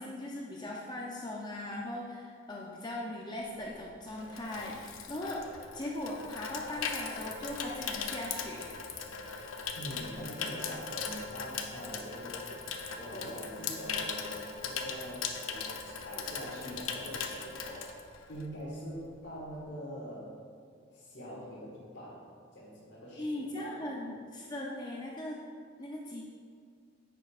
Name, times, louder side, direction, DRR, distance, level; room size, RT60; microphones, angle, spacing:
voice 1, 0.0-5.5 5.7-8.7 23.2-25.4 25.8-26.2, left 1 dB, 20° left, -2 dB, 0.5 m, -39 dB
Water tap faucet / Sink (filling or washing), 3.6-18.6 18.9-19.2, left 5 dB, 80° left, 0.6 m, -39 dB
voice 2, 9.7-20.3 20.9-22.2 22.5-23.9, equal, 60° left, -10 dB, 1.7 m, -44 dB
9.9 x 6.7 x 2.4 m, 2.1 s
head